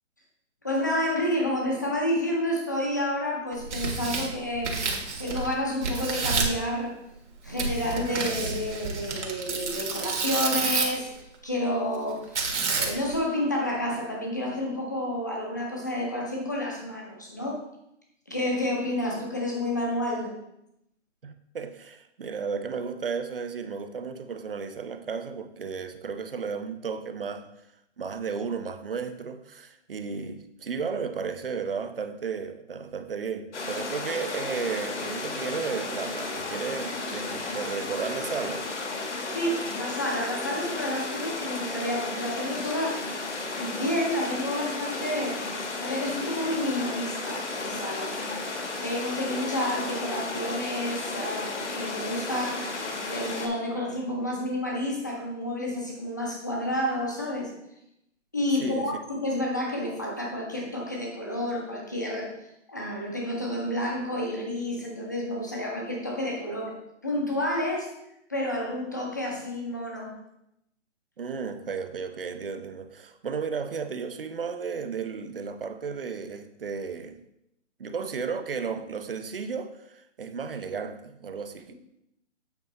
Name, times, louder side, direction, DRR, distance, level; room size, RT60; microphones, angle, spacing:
voice 1, 0.6-4.8 5.2-7.0 7.4-12.4 12.7-17.6 18.3-20.3 39.3-43.1 43.6-45.4 45.8-48.2 48.8-52.7 53.0-57.5 58.3-62.3 62.7-66.7 67.0-67.9 68.3-70.1, left 1 dB, 15° left, -1 dB, 0.6 m, -30 dB
Tearing, 3.5-5.5 5.8-6.6 7.6-11.1 12.4-13.2, right 4 dB, 70° right, 1.8 m, -29 dB
voice 2, 21.2-27.5 28.0-38.6 58.6-58.9 71.2-77.2 77.8-81.7, right 5 dB, 50° right, 9 dB, 0.6 m, -34 dB
sound 1, 33.5-53.5, left 3 dB, 65° left, 1.5 m, -33 dB
8.1 x 4.2 x 3.9 m, 0.81 s
hypercardioid pair, 175°, 37 cm